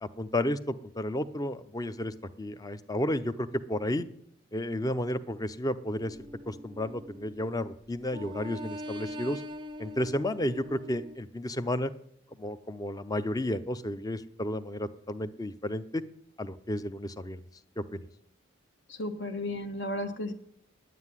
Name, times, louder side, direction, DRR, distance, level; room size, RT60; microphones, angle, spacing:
voice 1, 0.0-4.0 4.5-9.4 9.8-11.9 12.4-16.0 16.4-17.4 17.8-18.0, left 1 dB, 20° left, 13 dB, 0.6 m, -32 dB
sound 1, 6.0-7.6 8.0-11.2, left 1 dB, 25° right, 0.5 m, -43 dB
voice 2, 18.9-20.3, left 1 dB, 65° left, 6 dB, 1.6 m, -34 dB
10.0 x 9.4 x 9.7 m, 0.73 s
head